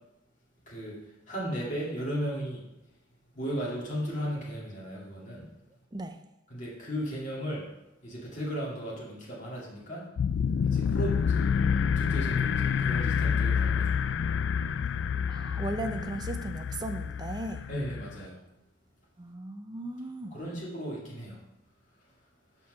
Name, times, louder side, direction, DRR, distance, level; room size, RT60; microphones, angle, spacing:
voice 1, 0.7-1.0 1.3-2.6 3.3-5.5 6.5-7.6 8.0-10.0 10.6-11.6 11.9-13.9 17.7-18.4 20.3-21.4, equal, 40° left, -6 dB, 2.3 m, -35 dB
sound 1, 10.2-18.3, left 6 dB, 65° left, 0.3 m, -28 dB
voice 2, 15.3-17.7 19.2-20.4, right 2 dB, 20° right, 7 dB, 0.5 m, -37 dB
5.7 x 4.5 x 6.2 m, 0.90 s
head